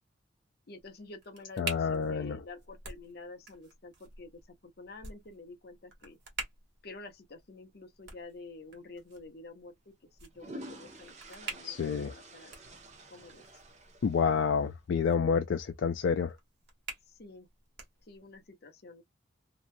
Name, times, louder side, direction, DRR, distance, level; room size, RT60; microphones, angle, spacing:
voice 1, 0.7-6.2 6.8-9.8 10.2-12.1 12.3-12.5 13.1-13.4 17.1-17.5 18.0-19.0, left 3 dB, 55° left, 0.7 m, -49 dB
sound 1, 0.7-18.5, right 4 dB, 60° right, 1.3 m, -48 dB
voice 2, 1.6-2.4 11.6-12.1 14.0-16.4, left 6 dB, 70° left, 0.3 m, -29 dB
sound 2, 8.7-8.9 10.0-14.6, right 1 dB, 35° right, 0.5 m, -49 dB
2.8 x 2.2 x 2.5 m
head